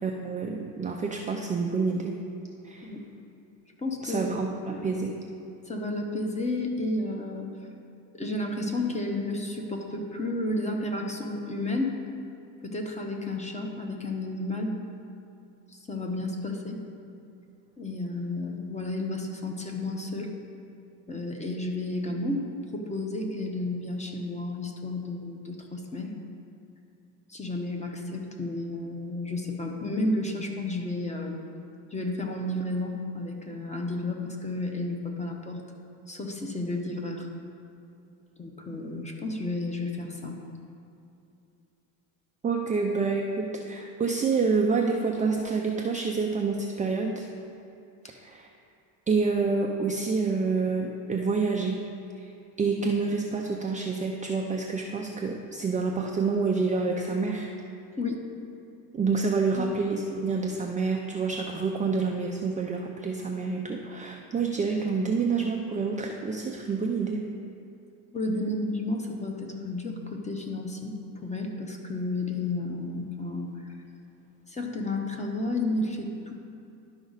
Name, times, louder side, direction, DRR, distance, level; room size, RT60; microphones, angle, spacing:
voice 1, 0.0-2.2 2.6-2.9 4.0-5.1 42.4-47.3 48.1-48.5 49.1-51.8 52.1-52.3 52.6-57.5 58.9-67.3, right 4 dB, 20° right, 1 dB, 0.4 m, -28 dB
voice 2, 3.8-4.3 4.7-4.9 5.7-7.5 8.1-12.0 12.6-14.7 15.7-16.8 17.8-20.3 21.1-22.4 22.7-26.1 27.3-31.4 31.9-35.6 36.1-37.3 38.4-40.4 48.0-48.2 58.0-58.2 59.6-59.7 68.1-73.7 74.5-76.3, left 2 dB, 15° left, 2 dB, 0.9 m, -32 dB
11.5 x 5.1 x 4.0 m, 2.6 s
cardioid pair, 120°, 43 cm